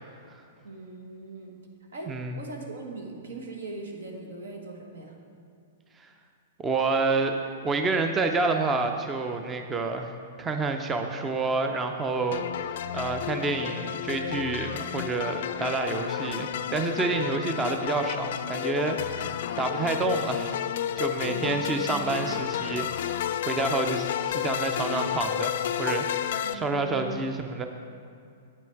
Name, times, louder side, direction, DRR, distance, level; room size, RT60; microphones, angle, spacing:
voice 1, 0.6-1.6 1.9-5.1 21.2-22.1 26.4-27.2, right 2 dB, 85° right, 1 dB, 1.4 m, -40 dB
voice 2, 2.1-2.4 6.0-6.1 6.6-7.3 7.6-10.1 10.4-20.7 21.0-27.7, right 3 dB, 15° right, 5 dB, 0.4 m, -29 dB
sound 1, 12.3-26.5, left 10 dB, 65° left, 0.3 m, -31 dB
8.7 x 6.0 x 4.6 m, 2.4 s
hypercardioid pair, 140°, 0 cm